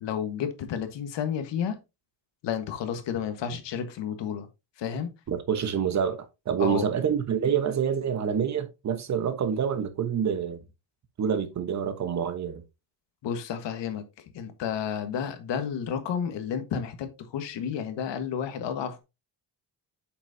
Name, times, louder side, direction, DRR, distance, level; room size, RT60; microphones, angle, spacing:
voice 1, 0.0-1.8 2.4-4.5 4.8-5.1 6.6-6.9 13.2-14.0 14.3-19.0, left 8 dB, 75° left, 1.5 m, -31 dB
voice 2, 5.3-10.6 11.2-12.6, right 7 dB, 40° right, 1.1 m, -27 dB
8.2 x 6.0 x 2.7 m
cardioid pair, 165°, 44 cm